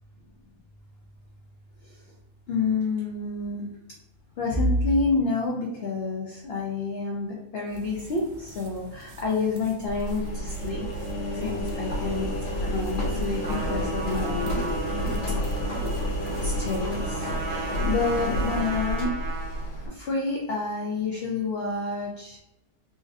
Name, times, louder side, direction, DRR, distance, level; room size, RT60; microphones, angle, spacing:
voice 1, 2.5-3.7 4.4-10.9 11.3-12.3 12.7-14.8 16.4-19.1 19.9-22.4, left 3 dB, 75° left, -2 dB, 0.5 m, -28 dB
sound 1, 7.7-18.3, right 1 dB, 75° right, 1.2 m, -47 dB
Engine, 9.9-19.9, equal, 55° left, 1.1 m, -30 dB
Trumpet, 13.4-19.7, right 3 dB, 90° right, 1.6 m, -36 dB
4.0 x 2.6 x 2.5 m, 0.88 s
omnidirectional pair, 1.8 m